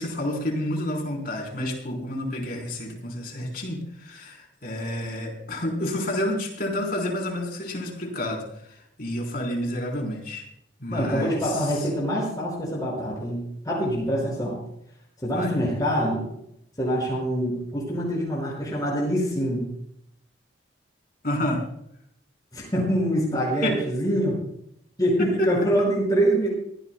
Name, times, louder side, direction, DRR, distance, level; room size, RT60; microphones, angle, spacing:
voice 1, 0.0-8.7 9.0-10.5 10.8-11.7 15.3-15.5 21.2-21.6 23.6-23.8 25.2-25.5, left 1 dB, 50° left, 0 dB, 3.8 m, -29 dB
voice 2, 10.9-14.6 15.2-16.3 16.8-19.7 22.5-24.4 25.0-26.5, equal, 20° left, -5 dB, 5.5 m, -25 dB
24.0 x 15.5 x 2.2 m, 0.74 s
head